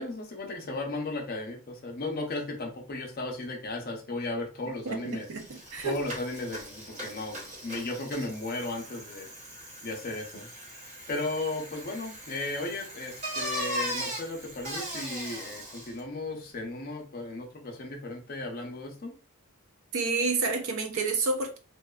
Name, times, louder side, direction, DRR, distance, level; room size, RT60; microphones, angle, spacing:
voice 1, 0.0-5.3 5.8-9.3 9.8-10.5 11.1-19.2, left 2 dB, 40° left, 0.5 m, -35 dB
Bicycle, 4.9-5.0 5.2-16.0, equal, 30° right, 0.8 m, -39 dB
voice 2, 4.9-6.0 19.9-21.6, right 3 dB, 65° right, 0.5 m, -29 dB
2.5 x 2.2 x 2.3 m
head